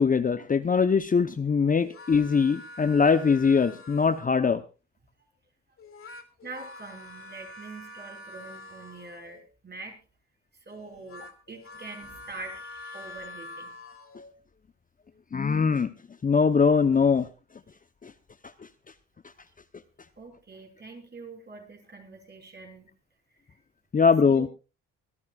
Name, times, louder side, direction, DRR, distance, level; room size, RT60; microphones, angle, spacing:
voice 1, 0.0-4.6 15.3-15.9 16.2-17.3 18.0-18.1 23.9-24.5, left 5 dB, 25° left, 10 dB, 0.8 m, -22 dB
sound 1, 1.8-4.4 5.8-9.5 10.7-14.3, left 2 dB, 45° left, 2.4 m, -45 dB
voice 2, 6.4-10.0 10.7-13.7 20.2-22.9 24.2-24.5, right 3 dB, 35° right, 2 dB, 5.7 m, -44 dB
25.0 x 13.0 x 2.4 m, 0.32 s
cardioid pair, 90°, 30 cm